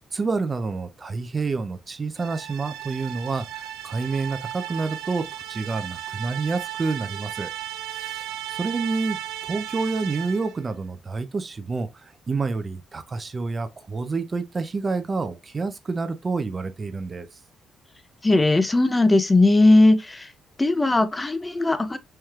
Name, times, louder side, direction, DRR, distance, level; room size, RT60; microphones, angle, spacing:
voice 1, 0.1-7.5 7.9-9.2 9.4-17.3, right 4 dB, 35° right, 0.5 m, -28 dB
sound 1, 2.2-10.6, right 11 dB, 90° right, 0.6 m, -35 dB
voice 2, 18.2-20.3 20.6-22.0, left 2 dB, 20° left, 0.5 m, -18 dB
4.4 x 3.2 x 2.4 m
cardioid pair, 90°, 0 cm